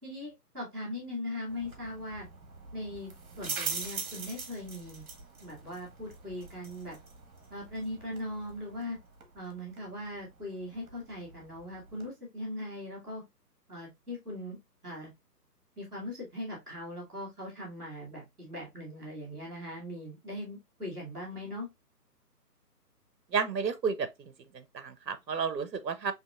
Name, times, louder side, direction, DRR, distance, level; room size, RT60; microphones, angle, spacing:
voice 1, 0.0-2.3 2.7-3.1 3.4-5.0 5.4-7.0 7.5-9.0 9.3-13.2 13.7-15.1 15.8-21.7, left 1 dB, ahead, 0.6 m, -40 dB
sound 1, 1.5-12.1, right 4 dB, 60° right, 1.6 m, -43 dB
voice 2, 23.3-24.1 24.5-26.1, right 5 dB, 80° right, 0.9 m, -31 dB
5.4 x 2.8 x 2.4 m
figure-of-eight pair, 150°, 49 cm